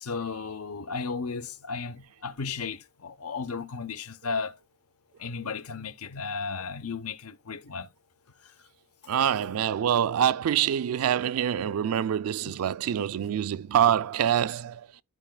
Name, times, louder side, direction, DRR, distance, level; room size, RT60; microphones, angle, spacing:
voice 1, 0.0-4.6 5.2-7.9 8.4-8.5 12.4-12.6 13.2-13.3, left 5 dB, 80° left, 0.8 m, -34 dB
voice 2, 9.1-14.8, right 9 dB, 75° right, 0.3 m, -25 dB
13.5 x 4.8 x 2.2 m
head